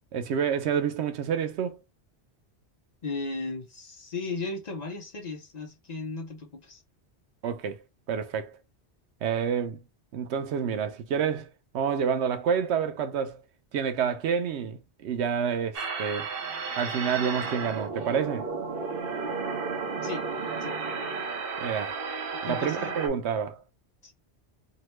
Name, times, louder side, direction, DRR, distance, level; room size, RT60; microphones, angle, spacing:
voice 1, 0.1-1.8 7.4-7.8 8.1-8.5 9.2-9.8 10.1-13.4 13.7-16.3 16.8-18.5 21.6-22.0 22.5-23.6, right 7 dB, 90° right, 0.9 m, -28 dB
voice 2, 3.0-6.8 20.0-20.2 20.6-20.7 22.4-22.9 24.0-24.1, left 3 dB, 45° left, 0.6 m, -36 dB
sound 1, 15.7-23.1, right 4 dB, 60° right, 0.9 m, -33 dB
2.8 x 2.1 x 3.0 m
omnidirectional pair, 1.1 m